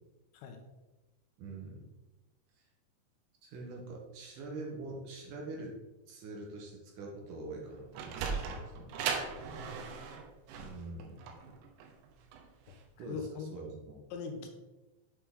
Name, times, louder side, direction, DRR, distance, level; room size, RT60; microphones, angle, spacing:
voice 1, 1.4-1.8 3.4-5.8 6.1-8.9 10.6-11.2 13.0-14.0, right 2 dB, 70° right, 0 dB, 2.1 m, -44 dB
Sliding door, 7.6-12.8, right 5 dB, 90° right, 3.1 m, -38 dB
voice 2, 13.1-13.5 14.1-14.5, left 6 dB, 85° left, 4 dB, 3.2 m, -41 dB
8.5 x 5.9 x 3.7 m, 1.1 s
omnidirectional pair, 5.1 m